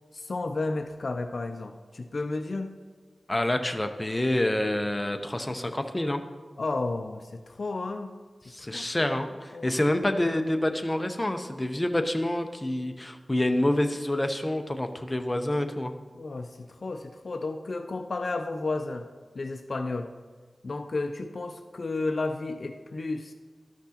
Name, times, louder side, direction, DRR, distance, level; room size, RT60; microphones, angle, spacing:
voice 1, 0.1-2.7 6.6-8.1 8.7-9.1 9.5-9.8 16.1-19.1 19.3-20.1 20.6-23.3, left 3 dB, 65° left, 7 dB, 0.4 m, -32 dB
voice 2, 3.3-6.2 8.5-15.9, left 1 dB, 25° left, 6 dB, 0.7 m, -27 dB
13.0 x 5.9 x 2.9 m, 1.4 s
cardioid pair, 55°, 0 cm